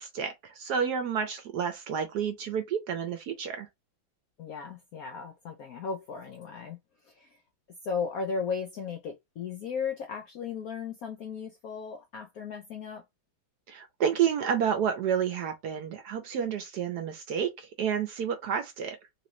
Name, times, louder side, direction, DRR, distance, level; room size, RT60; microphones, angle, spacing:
voice 1, 0.0-3.7 13.7-19.0, right 7 dB, 65° right, 1.1 m, -30 dB
voice 2, 4.4-6.8 7.0-7.4 7.8-13.0, left 5 dB, 70° left, 0.8 m, -36 dB
3.0 x 3.0 x 3.0 m
omnidirectional pair, 2.2 m